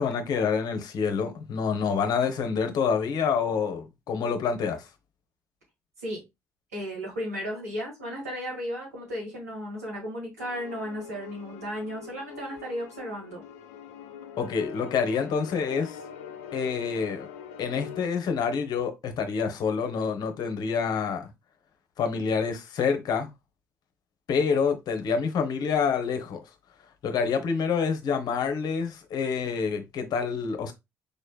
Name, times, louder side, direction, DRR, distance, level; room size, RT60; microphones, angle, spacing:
voice 1, 0.0-4.9 14.4-16.0 16.5-17.2 17.6-21.3 22.0-23.3 24.3-26.4 27.0-30.7, left 6 dB, 55° left, 0.8 m, -27 dB
voice 2, 6.7-13.4, equal, 90° right, 1.7 m, -34 dB
sound 1, 10.4-18.1, left 7 dB, 75° left, 0.4 m, -43 dB
5.1 x 3.2 x 2.2 m
hypercardioid pair, 50°, 8 cm